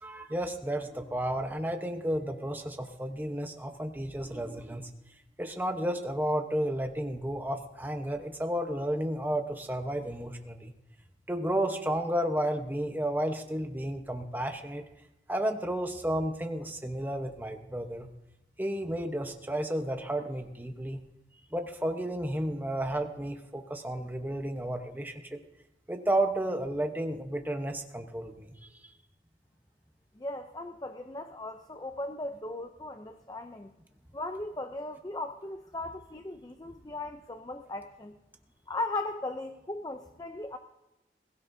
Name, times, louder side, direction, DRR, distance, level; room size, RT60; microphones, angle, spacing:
voice 1, 0.0-4.9 5.4-10.7 11.3-14.8 15.3-18.1 18.6-21.0 21.5-25.4 25.9-28.5, right 1 dB, 10° right, 5 dB, 1.0 m, -32 dB
voice 2, 30.2-33.7 34.1-38.2 38.7-40.6, left 2 dB, 20° left, 7 dB, 0.5 m, -37 dB
21.5 x 16.0 x 2.7 m, 0.94 s
head